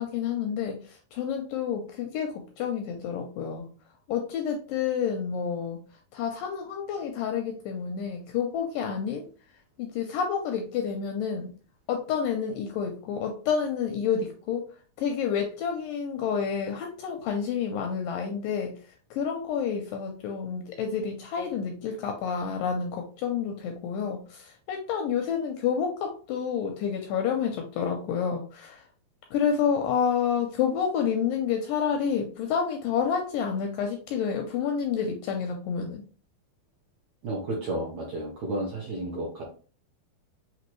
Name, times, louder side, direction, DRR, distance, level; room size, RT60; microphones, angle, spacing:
voice 1, 0.0-3.7 4.1-5.8 6.1-9.2 9.8-11.5 11.9-14.6 15.0-18.8 19.1-28.8 29.3-36.0, left 7 dB, 80° left, 3 dB, 2.0 m, -29 dB
voice 2, 37.2-39.4, right 1 dB, 75° right, -3 dB, 1.6 m, -32 dB
6.0 x 2.7 x 3.0 m, 0.40 s
omnidirectional pair, 4.4 m